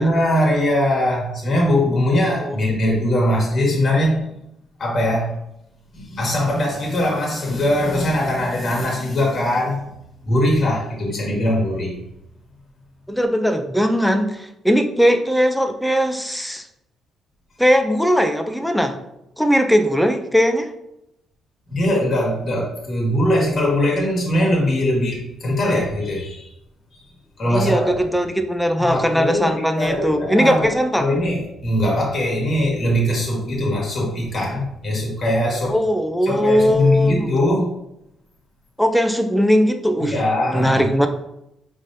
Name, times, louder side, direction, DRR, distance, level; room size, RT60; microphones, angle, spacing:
voice 1, 0.0-4.3 4.8-5.3 5.9-9.9 10.2-12.0 21.7-26.5 26.9-27.1 27.4-27.9 28.8-30.7 31.0-35.8 36.2-37.7 40.0-40.9, left 1 dB, 45° left, -2 dB, 1.6 m, -21 dB
voice 2, 13.1-16.6 17.6-19.0 19.4-20.7 27.5-31.2 35.7-37.3 38.8-40.1 40.5-41.1, equal, ahead, 6 dB, 0.4 m, -19 dB
5.2 x 3.3 x 2.7 m, 0.83 s
cardioid pair, 90°, 0 cm